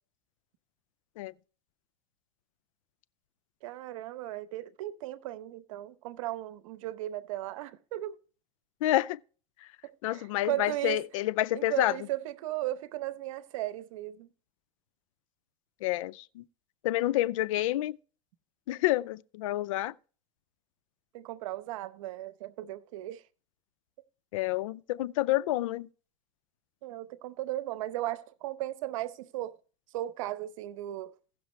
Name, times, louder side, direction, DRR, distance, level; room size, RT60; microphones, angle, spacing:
voice 1, 3.6-8.2 9.8-11.0 11.5-14.3 21.1-23.2 26.8-29.6 29.9-31.1, right 15 dB, 80° right, 0.8 m, -36 dB
voice 2, 8.8-9.2 10.0-11.9 15.8-16.4 16.8-18.0 18.7-19.9 24.3-25.9, left 15 dB, 85° left, 0.4 m, -28 dB
16.0 x 6.1 x 3.1 m
supercardioid pair, 120°, 17 cm